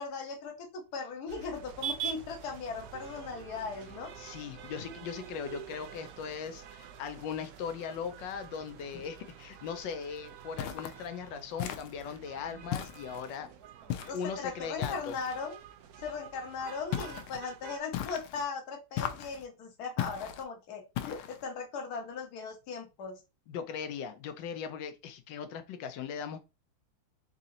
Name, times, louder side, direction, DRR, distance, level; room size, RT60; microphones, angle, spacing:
voice 1, 0.0-4.1 14.1-15.6 16.0-23.2, left 5 dB, 55° left, 1.4 m, -38 dB
sound 1, 1.3-17.8, right 8 dB, 80° right, 0.8 m, -46 dB
voice 2, 4.2-13.5 14.1-15.2 23.5-26.4, left 6 dB, 70° left, 1.2 m, -39 dB
sound 2, 10.6-11.0 11.6-12.2 12.7-13.4 13.9-14.3 14.8-15.4 16.9-17.4 17.9-18.4 19.0-19.4 20.0-20.4 21.0-21.4, left 10 dB, 90° left, 1.4 m, -37 dB
4.1 x 2.8 x 3.7 m
omnidirectional pair, 2.2 m